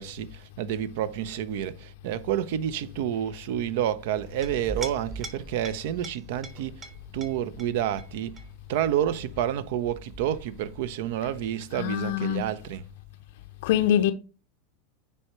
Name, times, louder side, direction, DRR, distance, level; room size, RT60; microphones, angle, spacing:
voice 1, 0.0-6.9 7.1-8.4 8.7-12.8, right 11 dB, 60° right, 0.5 m, -29 dB
Chink clink, 4.2-11.3, right 3 dB, 30° right, 1.3 m, -43 dB
voice 2, 11.7-12.6 13.6-14.1, left 11 dB, 60° left, 0.5 m, -24 dB
9.5 x 3.3 x 3.0 m
hypercardioid pair, 85°, 0 cm